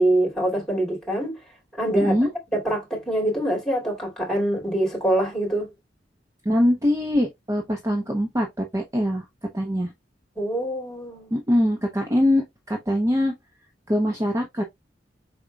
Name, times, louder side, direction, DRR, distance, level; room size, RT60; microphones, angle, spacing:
voice 1, 0.0-1.4 1.8-2.2 2.5-5.7 10.4-11.3, right 1 dB, 5° left, 2.6 m, -24 dB
voice 2, 1.9-2.3 6.4-9.2 9.5-9.9 11.3-13.3 13.9-14.6, left 1 dB, 15° right, 0.7 m, -23 dB
5.0 x 4.2 x 2.3 m
head